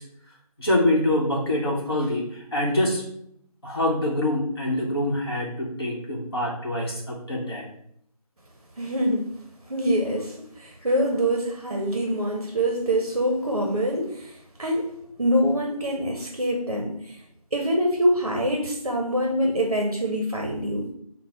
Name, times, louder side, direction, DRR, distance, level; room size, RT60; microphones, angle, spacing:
voice 1, 0.6-3.1 3.6-7.7, left 1 dB, 40° left, -4 dB, 1.0 m, -25 dB
voice 2, 8.8-9.3 9.7-14.9 15.2-17.2 17.5-20.9, equal, 50° right, 2 dB, 0.6 m, -25 dB
4.0 x 2.0 x 4.2 m, 0.71 s
figure-of-eight pair, 170°, 19 cm